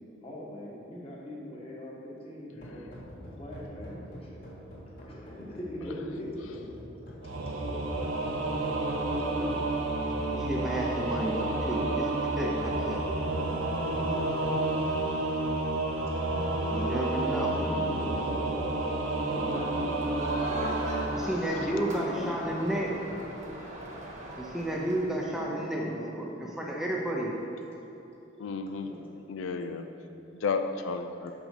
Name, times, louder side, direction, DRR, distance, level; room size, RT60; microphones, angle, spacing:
voice 1, 0.2-3.1 3.4-4.4 5.0-6.6 8.9-9.7 17.4-18.6 19.2-23.0 23.3-24.1 25.3-26.6 28.8-29.1, equal, 30° left, -4 dB, 1.4 m, -42 dB
sound 1, 2.5-16.6, equal, 50° left, 1.9 m, -47 dB
Singing / Musical instrument, 7.2-21.1, right 2 dB, 85° right, 0.9 m, -30 dB
voice 2, 10.3-13.1 16.5-17.5 21.2-22.9 24.4-26.2 26.6-27.3, right 1 dB, ahead, -3 dB, 0.6 m, -32 dB
Crowd, 20.0-25.3, right 1 dB, 40° right, 1.2 m, -39 dB
voice 3, 28.4-28.9 29.3-29.8 30.4-31.3, left 4 dB, 85° left, 7 dB, 0.4 m, -32 dB
6.1 x 5.3 x 6.5 m, 2.9 s
head